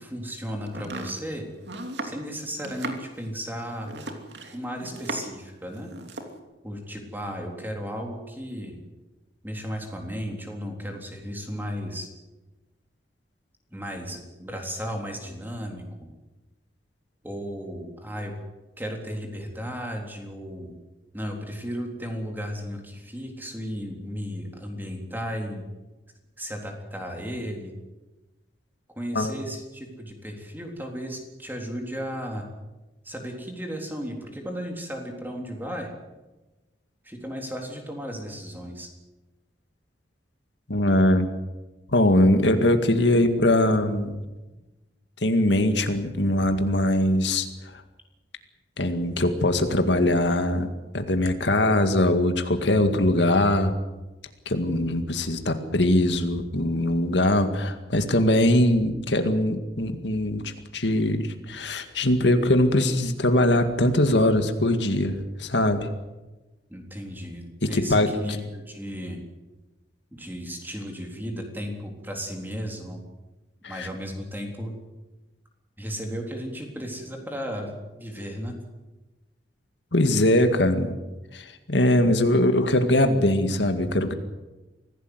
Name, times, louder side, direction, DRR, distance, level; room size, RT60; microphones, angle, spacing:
voice 1, 0.0-1.5 2.0-3.9 4.5-5.9 6.6-8.8 9.4-12.1 13.7-16.1 17.2-18.4 18.8-20.7 21.1-25.7 26.4-27.7 28.9-32.5 33.0-35.9 37.0-38.9 66.7-69.2 70.1-73.0 73.7-74.8 75.8-77.7 78.0-78.6, equal, 10° right, 2 dB, 3.7 m, -34 dB
Domestic sounds home sounds, 0.7-5.5 5.7-6.4, right 2 dB, 70° right, 2.9 m, -37 dB
voice 2, 40.7-41.3 41.9-44.2 45.2-47.5 48.8-50.7 50.9-53.7 54.5-65.8 67.6-68.1 73.7-73.9 79.9-80.9 81.3-84.1, left 1 dB, 75° left, 7 dB, 2.1 m, -21 dB
25.0 x 16.5 x 8.1 m, 1.1 s
head